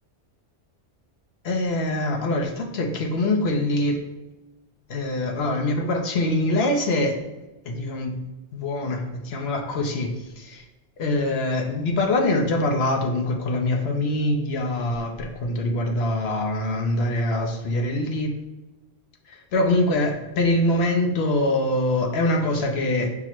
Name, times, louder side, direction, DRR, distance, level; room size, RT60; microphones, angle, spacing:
voice 1, 1.4-4.0 4.9-7.2 7.7-8.2 8.5-10.6 11.0-18.3 19.3-23.1, left 1 dB, 65° left, 2 dB, 0.8 m, -24 dB
5.7 x 2.0 x 4.4 m, 1.1 s
omnidirectional pair, 1.3 m